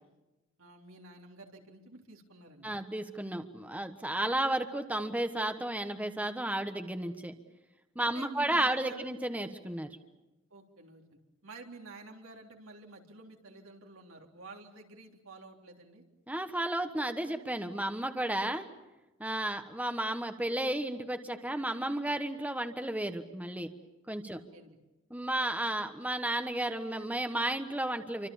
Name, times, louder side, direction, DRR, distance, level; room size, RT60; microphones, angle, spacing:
voice 1, 0.6-2.7 8.0-9.1 10.5-16.0 24.3-24.8, right 3 dB, 80° right, 1 dB, 3.6 m, -50 dB
voice 2, 2.6-7.3 7.9-9.9 16.3-18.7 19.2-23.7 24.1-24.4 25.1-28.3, right 1 dB, 5° right, 7 dB, 1.2 m, -33 dB
28.5 x 25.0 x 7.2 m, 1.1 s
head